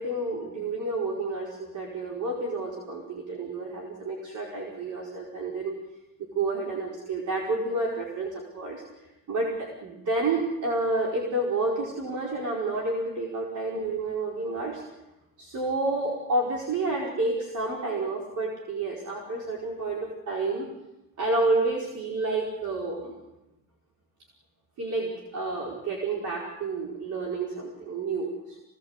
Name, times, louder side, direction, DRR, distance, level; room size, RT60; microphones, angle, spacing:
voice 1, 0.0-5.8 6.2-8.8 9.3-14.8 15.4-20.7 21.2-23.2 24.8-28.6, right 2 dB, 55° right, -2 dB, 5.1 m, -30 dB
26.0 x 19.0 x 8.2 m, 0.99 s
cardioid pair, 140°, 35 cm